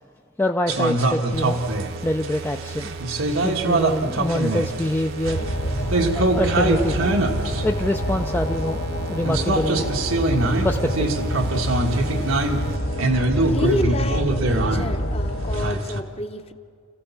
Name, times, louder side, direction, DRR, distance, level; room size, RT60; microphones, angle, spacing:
voice 1, 0.4-1.6 2.0-2.9 3.4-5.5 6.1-7.1 7.6-8.8 9.1-10.0 10.6-11.1 13.4-13.5, left 1 dB, 10° left, 0.4 m, -25 dB
sound 1, 0.7-8.7 9.2-16.0, right 2 dB, 90° right, 1.4 m, -24 dB
sound 2, 1.3-12.8, right 4 dB, 50° right, 0.9 m, -37 dB
sound 3, 5.3-15.7, equal, 60° left, 1.3 m, -27 dB
voice 2, 13.4-16.5, left 1 dB, 30° left, 0.9 m, -29 dB
27.5 x 15.0 x 7.0 m
head